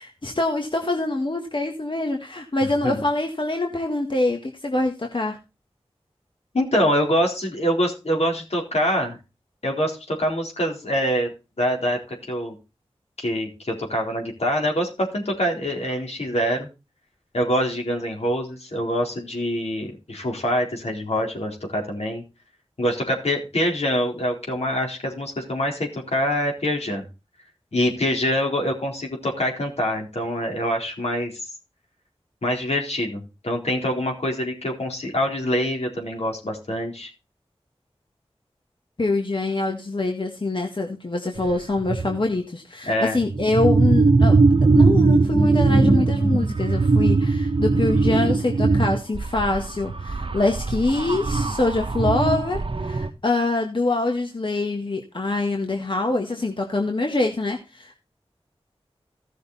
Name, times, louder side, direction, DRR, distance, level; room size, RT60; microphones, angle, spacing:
voice 1, 0.0-5.4 39.0-44.4 44.7-58.0, left 2 dB, 50° left, 2 dB, 1.8 m, -25 dB
voice 2, 6.5-9.2 9.6-11.3 11.6-12.6 13.2-16.7 17.3-22.2 22.8-27.0 27.7-31.4 32.4-37.1 42.9-43.2, equal, 85° left, 0 dB, 4.2 m, -25 dB
sound 1, 41.4-41.5 41.8-42.2 43.2-53.1, right 3 dB, 60° right, 1.0 m, -20 dB
15.5 x 6.5 x 4.2 m, 0.28 s
wide cardioid pair, 65°, 11 cm